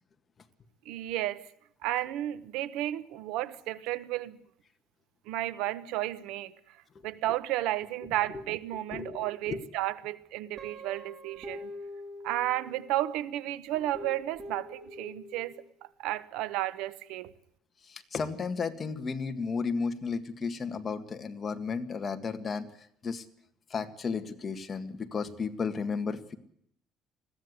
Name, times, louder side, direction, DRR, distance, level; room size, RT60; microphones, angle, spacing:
voice 1, 0.8-1.5 1.8-4.4 5.3-6.5 7.0-11.7 12.2-15.6 16.0-17.3, right 14 dB, 85° right, 1.2 m, -33 dB
voice 2, 8.9-9.6 17.9-22.7 23.0-23.2 23.7-26.3, left 5 dB, 30° left, 1.8 m, -33 dB
Guitar, 10.6-13.0 13.7-15.7, left 1 dB, 35° right, 4.4 m, -44 dB
21.0 x 16.0 x 9.6 m
cardioid pair, 135°, 0 cm